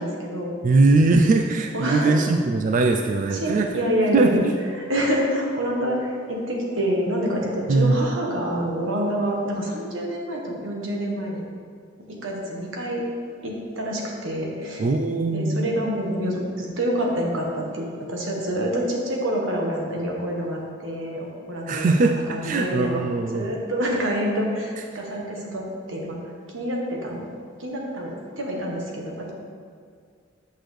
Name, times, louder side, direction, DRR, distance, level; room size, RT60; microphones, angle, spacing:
voice 1, 0.0-0.5 1.7-2.2 3.3-4.5 4.7-11.5 12.1-13.0 13.4-14.9 15.3-23.1 23.3-25.6 25.9-26.2 26.5-27.2 27.6-29.3, equal, 90° right, -1 dB, 1.3 m, -27 dB
voice 2, 0.6-3.7 4.1-4.5 7.7-8.0 14.8-15.6 21.7-22.2 22.4-23.5, right 3 dB, 40° right, 4 dB, 0.3 m, -20 dB
8.3 x 6.0 x 3.3 m, 2.1 s
head